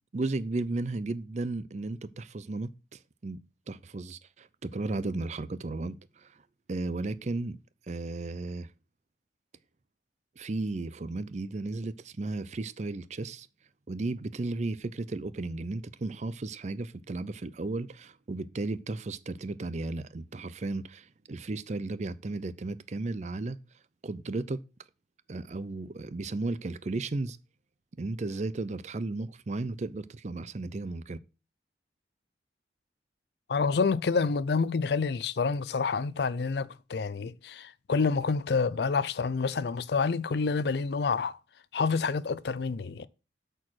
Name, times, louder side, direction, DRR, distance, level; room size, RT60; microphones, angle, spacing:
voice 1, 0.1-3.4 3.7-6.4 6.7-7.6 7.9-8.7 10.4-13.5 13.9-23.6 24.0-24.6 25.3-27.4 28.0-31.2, right 2 dB, 40° right, 0.5 m, -34 dB
voice 2, 33.5-41.4 41.7-43.1, left 4 dB, 65° left, 0.4 m, -28 dB
8.5 x 4.5 x 6.2 m
head